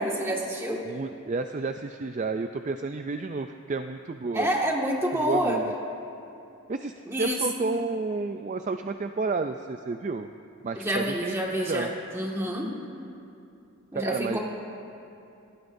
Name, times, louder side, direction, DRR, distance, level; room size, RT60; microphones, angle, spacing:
voice 1, 0.0-0.9 4.3-5.6 7.1-7.4 10.8-12.7 13.9-14.4, right 1 dB, 10° right, -2 dB, 1.8 m, -28 dB
voice 2, 0.9-4.5 5.3-5.7 6.7-10.3 10.6-11.3 11.7-11.9 13.9-14.4, right 3 dB, 35° right, 7 dB, 0.4 m, -31 dB
26.5 x 17.5 x 2.6 m, 2.7 s
head